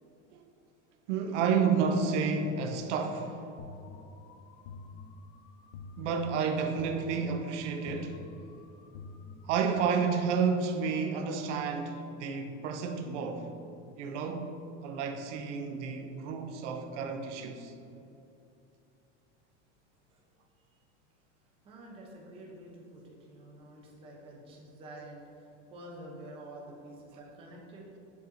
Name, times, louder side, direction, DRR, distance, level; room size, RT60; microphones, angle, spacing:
voice 1, 1.1-3.4 6.0-8.2 9.4-13.5 14.0-14.6 14.8-17.7, right 5 dB, 70° right, 5 dB, 0.6 m, -30 dB
sound 1, 3.6-10.0, left 4 dB, 45° left, 0.4 m, -48 dB
voice 2, 21.4-27.9, right 1 dB, 15° right, -3 dB, 0.6 m, -48 dB
7.8 x 5.0 x 2.6 m, 2.8 s
supercardioid pair, 175°, 38 cm